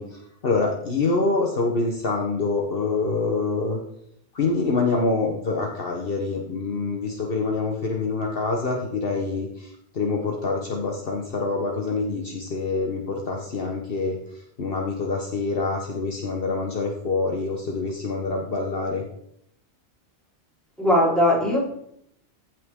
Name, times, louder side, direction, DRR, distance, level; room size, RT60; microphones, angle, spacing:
voice 1, 0.0-3.8 4.3-19.0, left 3 dB, 55° left, 1 dB, 1.3 m, -26 dB
voice 2, 20.8-21.6, left 1 dB, ahead, -7 dB, 4.1 m, -19 dB
15.0 x 5.9 x 3.7 m, 0.72 s
omnidirectional pair, 1.2 m